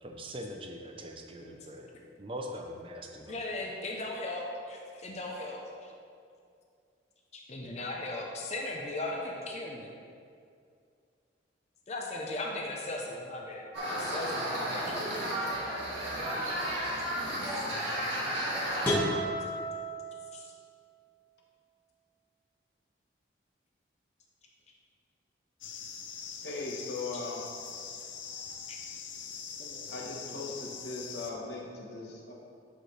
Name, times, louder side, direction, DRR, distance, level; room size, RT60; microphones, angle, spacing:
voice 1, 0.0-1.9 2.2-3.4, equal, 30° right, 3 dB, 0.6 m, -42 dB
voice 2, 1.4-1.8 3.3-5.9 7.3-9.9 11.9-15.5 17.5-17.6 20.3-20.5 28.7-28.8 29.6-30.5, left 2 dB, 35° left, -1 dB, 0.8 m, -38 dB
sound 1, 13.7-18.9, equal, 70° right, 2.0 m, -33 dB
sound 2, 18.8-20.7, equal, 10° left, 1.5 m, -32 dB
sound 3, 25.6-31.3, left 6 dB, 80° left, 0.7 m, -43 dB
voice 3, 26.4-27.5 29.9-32.3, left 3 dB, 65° left, -2 dB, 1.3 m, -39 dB
11.0 x 5.3 x 3.3 m, 2.3 s
head